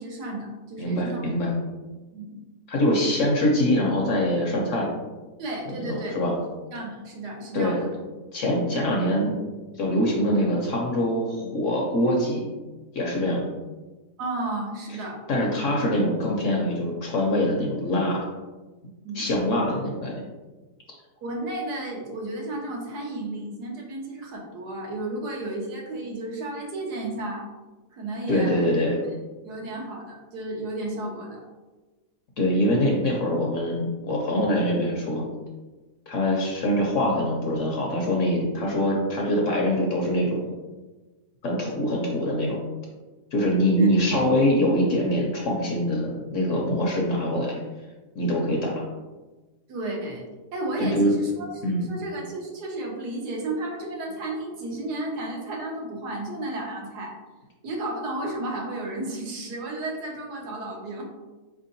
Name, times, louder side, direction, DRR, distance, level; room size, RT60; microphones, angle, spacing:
voice 1, 0.0-1.2 2.1-2.4 5.4-6.2 6.7-7.9 14.2-15.2 19.0-19.2 21.2-27.5 27.9-28.7 29.4-31.4 43.8-43.9 49.7-50.2 50.5-51.5 51.9-57.1 57.6-61.0, right 2 dB, 80° right, -1 dB, 1.5 m, -33 dB
voice 2, 0.8-1.5 2.7-4.9 5.7-6.3 7.5-7.8 8.3-9.4 9.8-12.4 12.9-13.4 15.3-18.3 19.1-20.2 28.3-29.0 32.4-35.2 36.1-40.4 41.4-42.6 43.3-47.6 48.2-48.8 50.8-51.1 51.6-51.9, equal, 60° left, -1 dB, 1.0 m, -24 dB
4.5 x 3.6 x 2.6 m, 1.2 s
omnidirectional pair, 1.7 m